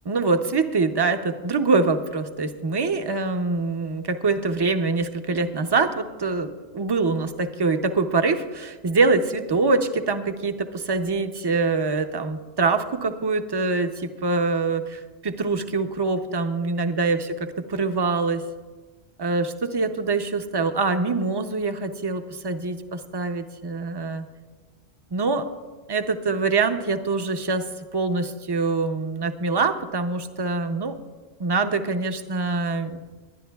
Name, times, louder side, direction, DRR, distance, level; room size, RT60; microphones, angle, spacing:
voice 1, 0.0-18.4 19.2-24.2 25.1-25.5 25.9-27.7 27.9-31.0 31.4-33.0, right 3 dB, 30° right, 8 dB, 0.5 m, -24 dB
20.5 x 11.5 x 2.3 m, 1.3 s
omnidirectional pair, 1.0 m